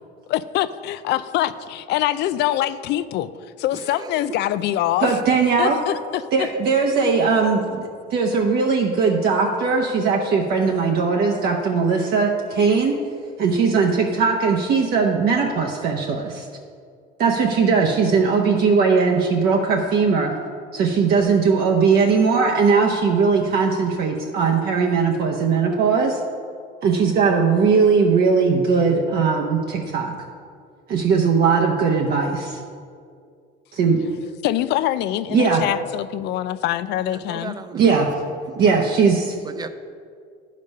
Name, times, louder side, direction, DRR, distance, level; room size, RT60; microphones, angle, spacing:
voice 1, 0.3-3.3 3.6-5.2 5.6-6.5 34.4-37.6, left 13 dB, 60° left, 15 dB, 0.4 m, -24 dB
voice 2, 3.8-4.3 6.5-6.6 37.1-38.1 38.5-39.0 39.4-39.7, right 4 dB, 20° right, 10 dB, 0.6 m, -37 dB
voice 3, 5.0-5.8 6.3-12.9 13.4-16.5 17.2-20.3 20.7-26.2 26.8-30.1 30.9-32.6 33.7-34.0 35.3-35.6 37.7-38.1 38.5-39.4, right 5 dB, 55° right, 0 dB, 0.9 m, -19 dB
10.5 x 5.2 x 5.4 m, 2.2 s
cardioid pair, 110°, 20 cm